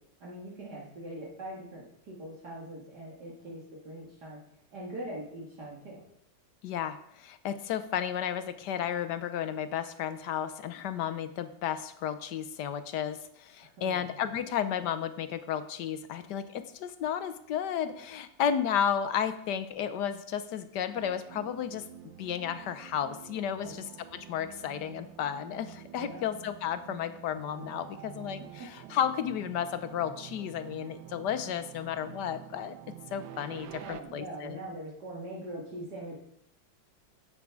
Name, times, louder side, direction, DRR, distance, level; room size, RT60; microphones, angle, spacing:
voice 1, 0.2-4.4 4.7-6.0 13.6-14.1 23.4-23.7 26.0-26.2 28.6-28.7 33.8-36.2, right 1 dB, 55° right, -5 dB, 2.5 m, -42 dB
voice 2, 6.6-21.9 22.2-23.8 24.1-34.6, left 9 dB, 70° left, 12 dB, 1.2 m, -33 dB
sound 1, 20.9-34.0, right 12 dB, 80° right, 1.4 m, -48 dB
11.5 x 8.2 x 4.7 m, 0.74 s
omnidirectional pair, 2.1 m